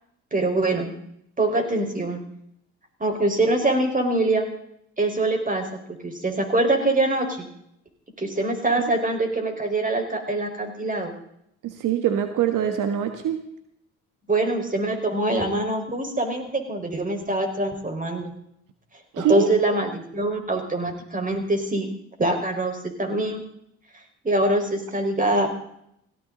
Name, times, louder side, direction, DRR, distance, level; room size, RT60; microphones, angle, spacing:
voice 1, 0.3-0.9 1.4-2.2 3.0-4.5 5.0-7.5 8.2-11.1 14.3-18.3 19.2-21.9 22.2-23.4 24.2-25.5, right 2 dB, 25° right, 4 dB, 4.7 m, -24 dB
voice 2, 11.6-13.4 19.1-19.5, right 9 dB, 75° right, 7 dB, 1.5 m, -23 dB
17.5 x 17.0 x 4.0 m, 0.74 s
supercardioid pair, 65°, 32 cm